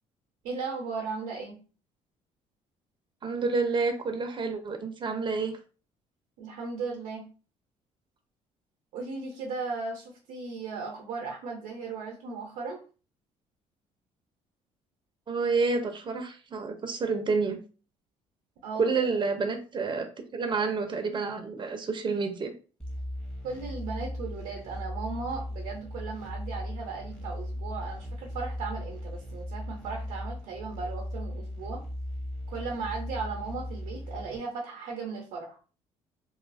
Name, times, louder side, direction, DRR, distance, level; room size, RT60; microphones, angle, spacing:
voice 1, 0.4-1.6 6.4-7.2 8.9-12.8 18.6-19.0 23.4-31.8 32.5-35.6, right 4 dB, 80° right, -1 dB, 0.7 m, -36 dB
voice 2, 3.2-5.6 15.3-17.6 18.8-22.5, right 4 dB, 35° right, 6 dB, 0.6 m, -29 dB
sound 1, 22.8-34.4, left 1 dB, 5° left, 1.0 m, -37 dB
2.5 x 2.4 x 2.5 m, 0.36 s
supercardioid pair, 70°, 14 cm